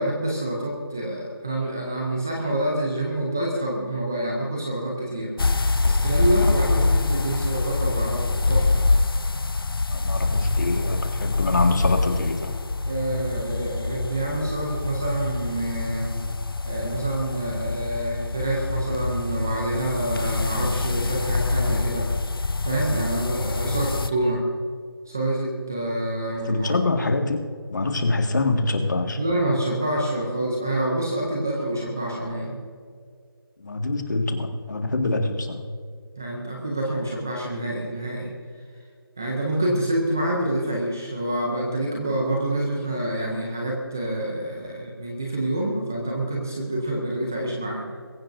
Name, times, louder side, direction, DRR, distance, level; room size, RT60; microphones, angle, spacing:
voice 1, 0.0-8.9 12.9-16.2 16.6-22.1 22.6-24.5 25.1-26.7 29.2-32.6 36.2-38.3 39.2-48.0, right 1 dB, 5° right, -2 dB, 0.5 m, -27 dB
sound 1, 5.4-24.1, left 3 dB, 65° left, 0.7 m, -25 dB
voice 2, 9.9-12.6 26.5-29.2 33.6-35.6, left 2 dB, 50° left, 4 dB, 1.8 m, -25 dB
23.0 x 16.0 x 2.6 m, 2.2 s
figure-of-eight pair, 175°, 13 cm